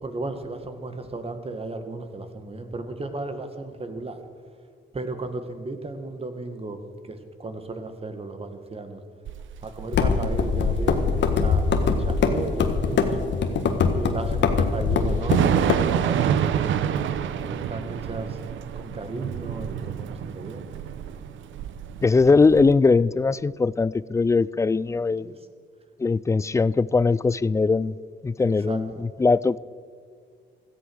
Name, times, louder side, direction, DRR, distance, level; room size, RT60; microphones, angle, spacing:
voice 1, 0.0-4.2 4.9-6.8 7.0-9.0 9.6-13.3 13.9-15.5 16.0-18.4 18.8-20.8 25.2-25.3 28.4-29.0, right 2 dB, 30° right, 1.9 m, -35 dB
Thunder / Rain, 9.2-22.7, right 9 dB, 75° right, 0.9 m, -28 dB
sound 1, 9.9-15.7, left 5 dB, 65° left, 1.6 m, -23 dB
voice 2, 22.0-25.3 26.0-28.0 28.2-29.6, left 4 dB, 15° left, 0.3 m, -20 dB
16.5 x 13.5 x 6.4 m
cardioid pair, 90°, 20 cm